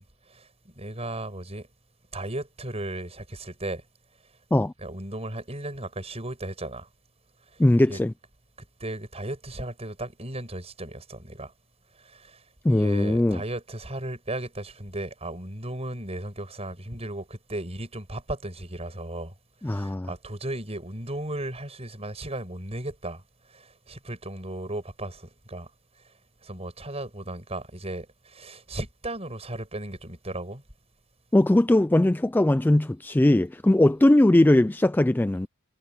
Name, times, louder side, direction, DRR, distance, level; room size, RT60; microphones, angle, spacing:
voice 1, 0.0-1.7 2.1-3.9 4.8-6.9 7.4-7.6 7.9-8.0 8.8-11.5 11.9-19.3 19.6-23.2 23.5-25.7 26.0-26.1 26.4-30.6, right 1 dB, 30° right, 7.1 m, -36 dB
voice 2, 7.6-8.1 12.6-13.4 19.6-20.1 31.3-35.5, left 1 dB, 10° left, 0.3 m, -20 dB
head